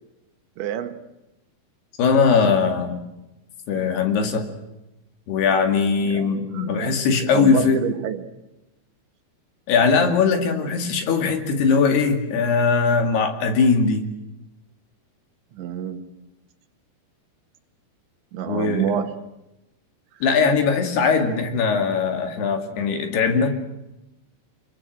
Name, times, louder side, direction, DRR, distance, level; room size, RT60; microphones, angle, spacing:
voice 1, 0.6-1.0 6.1-7.0 7.3-8.3 15.5-16.1 18.3-19.2 20.1-20.2, right 9 dB, 80° right, 8 dB, 3.9 m, -28 dB
voice 2, 2.0-3.0 3.7-4.5 5.3-7.8 9.7-14.0 18.5-18.9 20.2-23.6, left 5 dB, 65° left, 6 dB, 4.3 m, -20 dB
27.5 x 22.5 x 7.9 m, 0.94 s
omnidirectional pair, 5.2 m